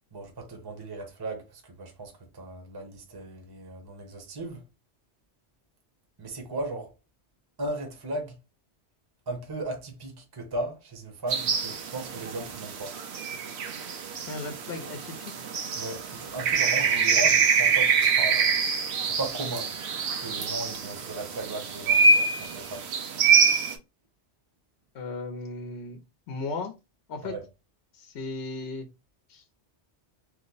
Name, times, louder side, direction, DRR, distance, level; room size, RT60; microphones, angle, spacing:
voice 1, 0.1-4.6 6.2-6.9 7.6-8.3 9.3-12.9 15.8-18.5 19.0-19.7 20.2-22.8 27.2-27.4, right 2 dB, 25° right, 0.7 m, -36 dB
sound 1, 11.3-23.7, right 5 dB, 75° right, 0.9 m, -25 dB
voice 2, 14.3-15.3 16.8-17.2 24.9-26.0 26.3-26.7 27.1-27.3 27.9-28.9 29.3-29.4, left 3 dB, 75° left, 0.9 m, -36 dB
3.0 x 2.0 x 3.8 m
omnidirectional pair, 1.1 m